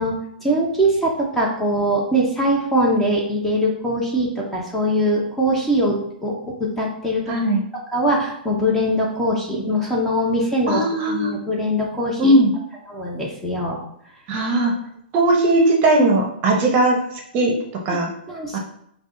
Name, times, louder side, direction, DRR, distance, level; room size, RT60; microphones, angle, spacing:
voice 1, 0.0-7.4 7.9-12.3 12.9-13.8 16.7-16.8 17.9-18.0 18.3-18.6, equal, 5° left, -3 dB, 0.8 m, -22 dB
voice 2, 7.3-7.6 10.7-11.3 12.2-12.5 14.3-14.7 15.1-17.0 17.3-17.5 17.8-18.1 18.5-18.6, right 2 dB, 30° right, 1 dB, 0.8 m, -18 dB
5.3 x 2.4 x 3.8 m, 0.72 s
hypercardioid pair, 150°, 6 cm